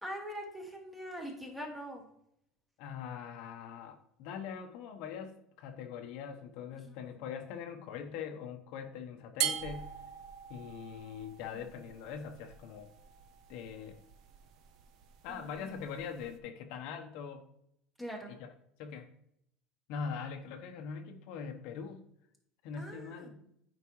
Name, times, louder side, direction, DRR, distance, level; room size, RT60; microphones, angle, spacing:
voice 1, 0.0-2.0 7.1-7.2 15.3-15.6 18.0-18.4 22.7-23.3, equal, 5° right, 1 dB, 1.5 m, -43 dB
voice 2, 2.8-9.9 10.5-12.9 13.5-14.0 15.2-17.5 18.3-18.5 18.8-19.1 19.9-22.0 22.6-23.4, left 6 dB, 65° left, 5 dB, 0.9 m, -42 dB
sound 1, 9.4-16.4, right 9 dB, 50° right, 0.7 m, -42 dB
9.3 x 5.0 x 3.1 m, 0.75 s
cardioid pair, 150°, 0 cm